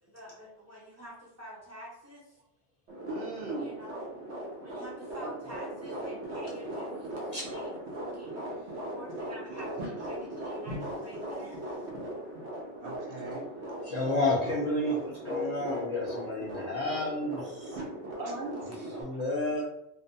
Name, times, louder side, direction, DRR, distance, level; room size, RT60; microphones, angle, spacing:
voice 1, 0.0-2.4 3.6-4.0 4.6-7.7 8.0-11.9, equal, 20° right, -4 dB, 0.4 m, -48 dB
sound 1, 2.9-19.0, right 1 dB, 85° right, 1.0 m, -39 dB
voice 2, 3.1-3.7 5.2-5.3 12.8-13.4 18.1-18.9 19.5-19.6, right 2 dB, 65° right, -1 dB, 0.7 m, -39 dB
voice 3, 13.8-17.8 18.6-19.6, left 2 dB, 50° left, -5 dB, 0.5 m, -31 dB
2.6 x 2.1 x 2.6 m, 0.78 s
omnidirectional pair, 1.1 m